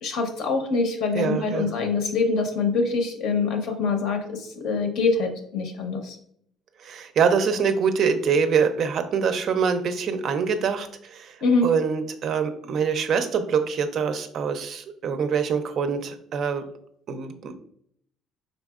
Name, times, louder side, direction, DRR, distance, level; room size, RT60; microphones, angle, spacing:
voice 1, 0.0-6.2 11.4-11.7, left 4 dB, 55° left, 5 dB, 0.8 m, -24 dB
voice 2, 1.1-1.7 6.8-11.4 11.6-16.6 17.1-17.5, right 6 dB, 40° right, 8 dB, 0.4 m, -24 dB
5.1 x 3.9 x 2.4 m, 0.66 s
cardioid pair, 175°, 0 cm